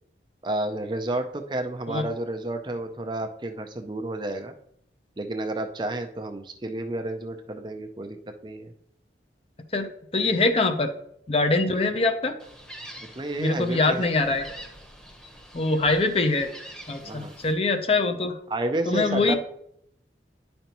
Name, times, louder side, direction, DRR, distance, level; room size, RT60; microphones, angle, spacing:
voice 1, 0.4-4.5 5.2-8.2 8.4-8.7 10.2-10.3 13.1-14.1 17.0-17.3 18.5-19.3, right 1 dB, 25° right, 6 dB, 0.5 m, -31 dB
voice 2, 10.1-10.9 11.3-12.4 13.4-14.5 15.5-16.5 16.9-18.4 18.9-19.3, left 3 dB, 30° left, 7 dB, 0.6 m, -23 dB
Gull seagull, 12.4-17.5, equal, 5° left, 1.0 m, -45 dB
10.0 x 5.3 x 2.9 m, 0.71 s
head